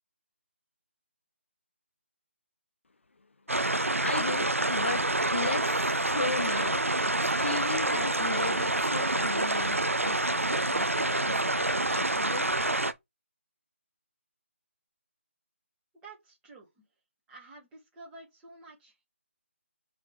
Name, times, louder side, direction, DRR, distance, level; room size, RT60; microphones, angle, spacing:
sound 1, 3.5-12.9, right 2 dB, 85° right, 0.9 m, -27 dB
voice 1, 4.0-6.9 7.2-12.5, left 3 dB, 65° left, 0.7 m, -36 dB
voice 2, 16.0-16.9 17.3-19.0, right 3 dB, 10° right, 2.7 m, -50 dB
6.1 x 3.9 x 4.5 m
figure-of-eight pair, 155°, 7 cm